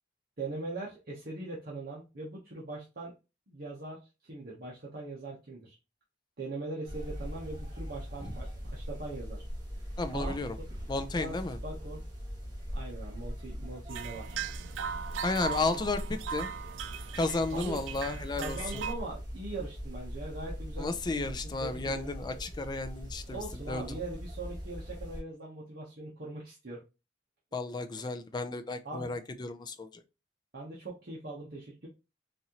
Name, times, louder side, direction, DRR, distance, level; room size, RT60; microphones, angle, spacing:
voice 1, 0.4-3.1 3.5-5.8 6.4-9.4 10.1-10.4 11.1-12.1 12.7-14.4 17.5-17.8 18.3-21.3 21.6-22.1 23.3-26.8 27.9-28.1 28.8-29.1 30.5-31.9, right 2 dB, 55° right, 0.9 m, -41 dB
sound 1, 6.8-25.2, equal, 20° right, 1.3 m, -41 dB
voice 2, 10.0-10.5 10.9-11.6 15.2-16.5 17.2-18.6 20.8-24.0 27.5-30.0, left 3 dB, 25° left, 0.4 m, -33 dB
sound 2, 13.9-18.9, right 8 dB, 80° right, 0.3 m, -39 dB
4.1 x 2.5 x 2.9 m
head